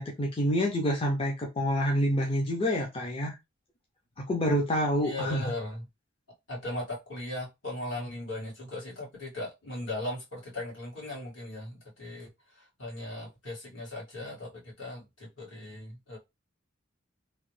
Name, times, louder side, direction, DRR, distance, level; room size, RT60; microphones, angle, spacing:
voice 1, 0.0-3.4 4.2-5.5, equal, 30° left, 0.5 m, -27 dB
voice 2, 5.0-5.8 6.5-12.3 12.6-16.2, left 1 dB, 70° left, 1.7 m, -38 dB
3.0 x 2.1 x 3.1 m
head